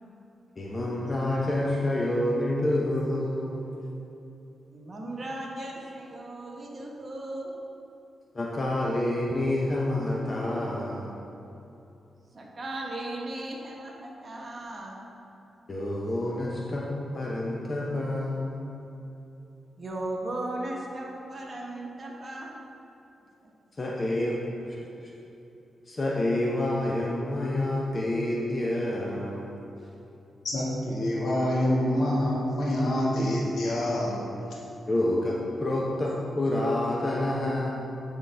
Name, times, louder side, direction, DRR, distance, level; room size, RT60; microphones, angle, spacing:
voice 1, 0.6-3.7 8.3-11.1 15.7-16.9 17.1-18.7 23.8-24.4 24.7-24.8 25.9-29.6 34.9-37.7, left 1 dB, 35° left, -3 dB, 0.7 m, -28 dB
voice 2, 4.7-7.5 12.3-15.0 19.8-22.6, right 1 dB, 40° right, -2 dB, 1.2 m, -36 dB
voice 3, 30.4-34.2, left 1 dB, 75° left, -5 dB, 1.6 m, -26 dB
11.5 x 3.9 x 3.4 m, 2.8 s
cardioid pair, 85°, 0 cm